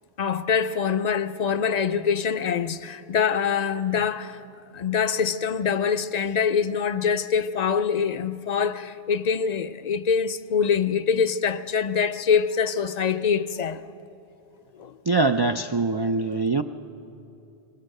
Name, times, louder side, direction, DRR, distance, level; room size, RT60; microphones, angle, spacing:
voice 1, 0.2-4.4 4.7-13.8 14.8-15.0, left 6 dB, 50° left, 0.6 m, -24 dB
voice 2, 15.1-16.6, right 3 dB, 40° right, 0.3 m, -23 dB
21.0 x 20.5 x 6.6 m
omnidirectional pair, 1.0 m